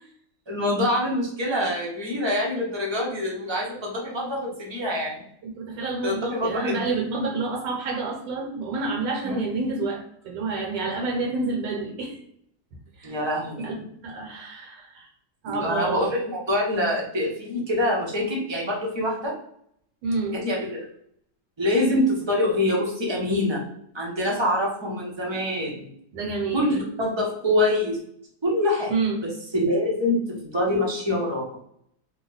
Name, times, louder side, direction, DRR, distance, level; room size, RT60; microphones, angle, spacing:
voice 1, 0.5-5.2 6.0-6.8 9.2-9.4 13.0-13.8 15.5-19.3 20.3-20.8 21.6-23.6 23.9-25.9 26.5-28.0 28.4-28.9 29.5-31.4, left 1 dB, 30° right, -3 dB, 0.5 m, -25 dB
voice 2, 5.4-12.2 13.0-13.2 13.6-15.1 15.4-16.1 20.0-20.4 26.1-26.7 28.9-29.2, right 3 dB, 80° right, 0 dB, 1.6 m, -29 dB
3.2 x 2.2 x 3.9 m, 0.70 s
omnidirectional pair, 1.9 m